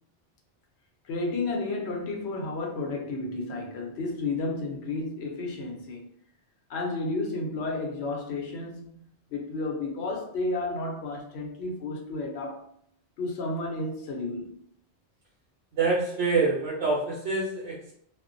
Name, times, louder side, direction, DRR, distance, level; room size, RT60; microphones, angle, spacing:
voice 1, 1.0-6.1 6.7-12.7 13.2-14.6, left 2 dB, 70° left, 0.9 m, -32 dB
voice 2, 15.8-17.9, right 4 dB, 85° right, 0.9 m, -26 dB
2.4 x 2.1 x 2.5 m
omnidirectional pair, 1.1 m